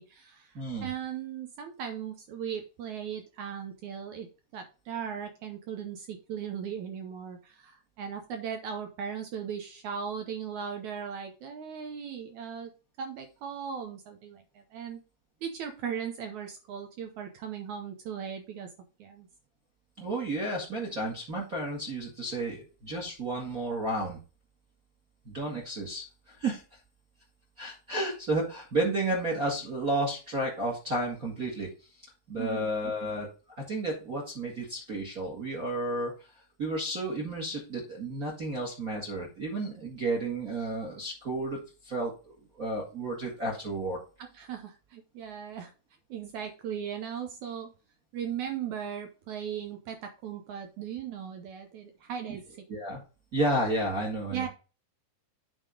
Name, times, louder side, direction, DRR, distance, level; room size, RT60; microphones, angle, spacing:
voice 1, 0.0-0.5 0.8-4.3 4.5-12.7 13.0-15.0 15.4-18.7 19.0-19.3 32.4-32.7 44.2-45.7 46.1-47.7 48.1-52.4 54.3-54.5, right 8 dB, 70° right, 5 dB, 1.9 m, -38 dB
voice 2, 0.5-0.9 20.0-24.2 25.2-26.6 27.6-31.7 32.3-33.3 33.6-36.1 36.6-44.0 52.7-53.0 53.3-54.5, right 2 dB, 35° right, -1 dB, 1.4 m, -32 dB
9.0 x 3.7 x 5.0 m, 0.33 s
omnidirectional pair, 4.2 m